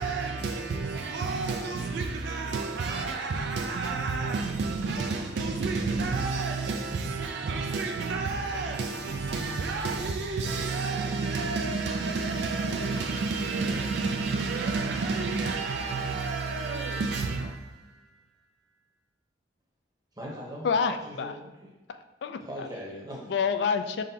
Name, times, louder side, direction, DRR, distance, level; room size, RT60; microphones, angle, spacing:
voice 1, 0.0-18.1, right 4 dB, 60° right, 0.3 m, -30 dB
voice 2, 20.1-21.7 22.4-23.3, equal, 20° right, 0.9 m, -40 dB
voice 3, 20.6-21.3 21.9-22.7 23.3-24.0, left 6 dB, 60° left, 0.3 m, -28 dB
4.8 x 3.9 x 2.8 m
head